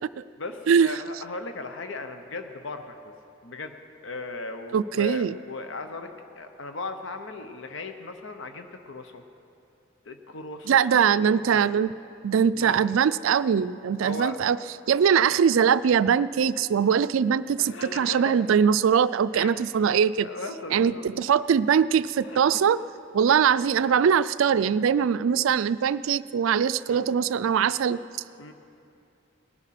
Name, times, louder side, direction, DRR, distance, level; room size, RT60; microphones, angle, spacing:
voice 1, 0.4-3.0 3.4-3.7 4.0-6.1 6.4-9.2 10.0-11.7 12.5-12.9 14.0-14.4 17.6-18.4 19.3-19.5 20.2-21.1 22.1-22.4 23.8-23.9 26.9-27.1 28.4-28.5, left 3 dB, 70° left, 7 dB, 0.8 m, -37 dB
voice 2, 4.7-5.3 10.7-11.9 12.2-14.6 14.9-20.3 20.7-22.8 23.1-28.0, right 7 dB, 80° right, 16 dB, 0.3 m, -22 dB
19.0 x 9.9 x 5.9 m, 2.6 s
head